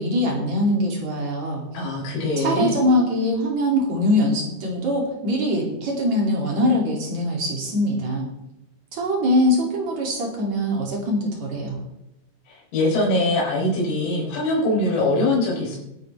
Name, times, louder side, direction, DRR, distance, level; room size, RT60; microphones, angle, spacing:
voice 1, 0.0-1.6 2.4-8.3 8.9-11.8, left 1 dB, 40° right, -1 dB, 3.3 m, -22 dB
voice 2, 1.7-2.8 12.5-15.8, left 2 dB, 85° left, -5 dB, 6.5 m, -22 dB
24.0 x 9.0 x 3.4 m, 0.87 s
omnidirectional pair, 6.0 m